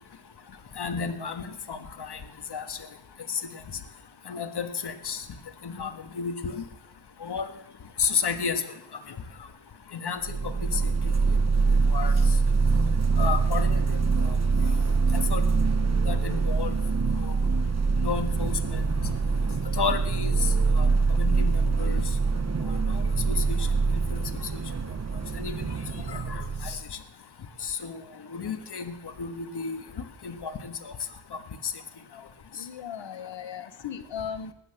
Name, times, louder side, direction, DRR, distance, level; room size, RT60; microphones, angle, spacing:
voice 1, 0.8-2.2 2.5-2.8 3.3-3.4 4.3-5.2 5.6-6.6 7.2-7.5 8.0-8.6 9.1-9.2 9.9-10.8 11.9-12.1 13.2-14.0 14.2-14.4 15.1-15.4 16.1-16.8 17.2-17.3 18.0-19.1 19.7-20.4 20.7-22.0 22.6-23.7 24.1-24.2 25.3-25.8 26.1-26.8 27.6-28.0 28.3-29.8 30.2-30.9 31.6-31.7, left 6 dB, 65° left, 8 dB, 1.6 m, -32 dB
sound 1, 10.2-26.8, right 4 dB, 35° right, 1.0 m, -24 dB
voice 2, 32.5-34.5, left 8 dB, 85° left, 11 dB, 1.3 m, -37 dB
20.0 x 8.1 x 7.6 m, 0.79 s
cardioid pair, 70°, 44 cm